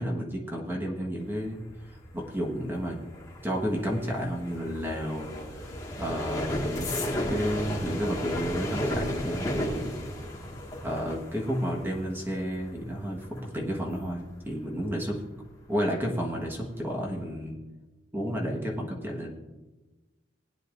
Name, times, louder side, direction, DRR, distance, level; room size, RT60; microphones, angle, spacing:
voice 1, 0.0-1.6 1.9-3.0 3.4-5.7 6.0-6.9 7.3-10.0 10.8-15.2 15.7-17.6 18.1-19.3, equal, 10° right, 0 dB, 1.4 m, -31 dB
sound 1, 1.2-15.9 16.2-16.6 16.9-17.3, left 1 dB, 20° left, 1.8 m, -35 dB
20.0 x 9.5 x 2.6 m, 1.2 s
head